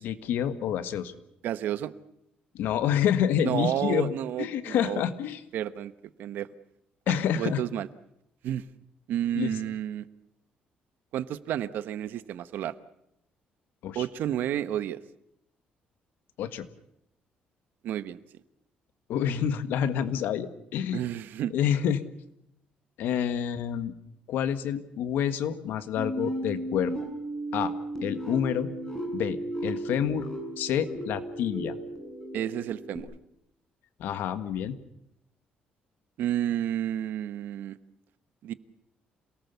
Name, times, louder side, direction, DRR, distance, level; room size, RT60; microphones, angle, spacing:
voice 1, 0.0-1.1 2.5-4.1 4.4-5.4 7.1-7.6 9.4-9.6 13.8-14.0 16.4-16.7 19.1-21.0 21.5-22.0 23.0-23.9 24.3-26.9 27.5-27.7 28.0-28.7 29.1-30.3 30.6-31.8 34.0-34.8, left 9 dB, 80° left, 11 dB, 1.6 m, -28 dB
voice 2, 1.4-1.9 3.4-5.0 5.5-5.9 6.2-6.5 7.3-7.9 8.4-8.6 9.1-10.1 11.1-12.7 13.9-15.0 17.8-18.2 20.9-21.5 32.3-33.1 36.2-37.8 38.4-38.5, right 11 dB, 75° right, 13 dB, 1.1 m, -31 dB
sound 1, 26.0-33.0, right 1 dB, 15° left, 7.0 m, -35 dB
27.5 x 19.0 x 6.9 m, 0.79 s
cardioid pair, 140°, 3 cm